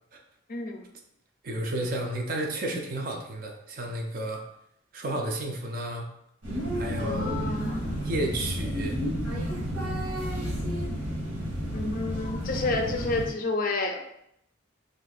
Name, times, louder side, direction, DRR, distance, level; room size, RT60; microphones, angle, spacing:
voice 1, 0.5-0.8 7.0-8.0 11.7-14.0, left 3 dB, 45° left, 3 dB, 0.4 m, -30 dB
voice 2, 1.4-4.4 4.9-6.1 6.7-7.4 8.0-9.0, right 1 dB, 45° right, 2 dB, 0.5 m, -32 dB
sound 1, 6.4-13.3, equal, 75° right, 1.3 m, -31 dB
2.6 x 2.5 x 3.9 m, 0.76 s
head